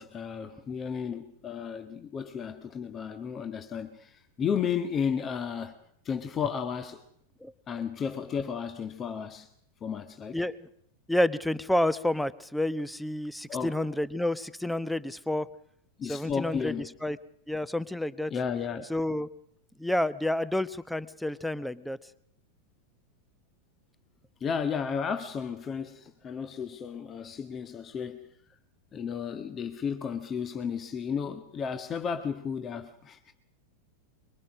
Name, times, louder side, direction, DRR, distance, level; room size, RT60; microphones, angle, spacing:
voice 1, 0.0-5.7 6.0-7.0 7.7-9.5 9.8-10.4 13.5-13.7 16.0-16.9 18.3-18.9 24.4-28.2 28.9-33.3, left 7 dB, 25° left, 1.6 m, -33 dB
voice 2, 10.3-10.7 11.1-15.5 16.1-16.7 17.0-17.2 17.5-18.3 18.9-19.3 19.8-22.0, left 1 dB, ahead, 1.0 m, -29 dB
24.5 x 24.0 x 6.3 m
figure-of-eight pair, 90°, 0 cm